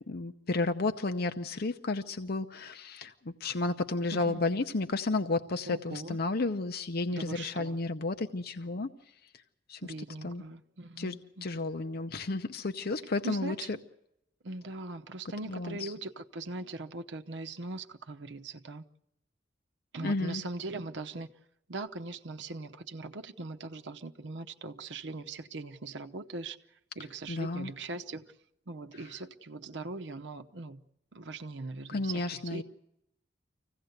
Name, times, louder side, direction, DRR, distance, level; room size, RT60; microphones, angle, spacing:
voice 1, 0.1-8.9 9.7-9.9 10.2-10.4 11.0-11.1 11.4-13.7 15.5-15.9 20.0-20.4 27.3-27.7 28.9-29.2 31.9-32.6, left 3 dB, 55° left, 0.7 m, -32 dB
voice 2, 4.1-4.4 5.7-6.2 7.1-7.8 9.8-11.5 13.2-13.8 14.4-18.8 19.9-21.3 21.7-26.6 27.0-28.2 28.7-30.8 31.1-32.6, right 3 dB, 70° right, 0.9 m, -40 dB
25.0 x 16.5 x 8.0 m
head